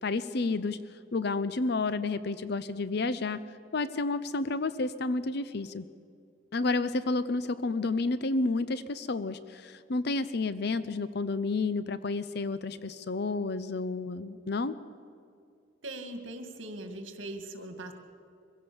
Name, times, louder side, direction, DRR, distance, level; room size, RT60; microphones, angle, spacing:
voice 1, 0.0-0.8 1.1-3.4 3.7-5.8 6.5-14.8, left 3 dB, 55° left, 14 dB, 0.6 m, -30 dB
voice 2, 15.8-17.9, right 1 dB, 75° right, 7 dB, 2.1 m, -40 dB
23.5 x 16.0 x 7.0 m, 2.4 s
head